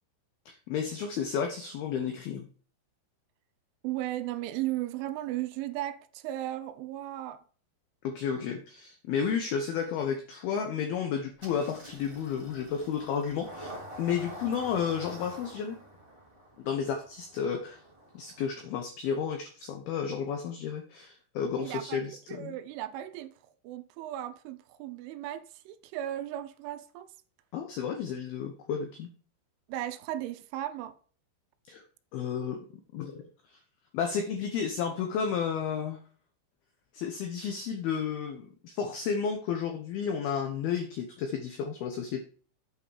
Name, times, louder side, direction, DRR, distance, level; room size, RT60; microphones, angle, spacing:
voice 1, 0.5-2.5 8.0-15.8 16.6-17.8 18.1-22.5 27.5-29.1 31.7-31.8 32.1-32.6 32.9-33.2 33.5-33.6 33.9-36.0 36.9-42.2, left 7 dB, 85° left, 2.1 m, -32 dB
voice 2, 3.8-7.4 21.6-23.3 23.6-27.1 29.7-31.0, right 13 dB, 85° right, 3.0 m, -36 dB
Engine starting, 11.4-18.7, equal, 10° right, 1.7 m, -47 dB
8.6 x 5.3 x 4.8 m
omnidirectional pair, 5.6 m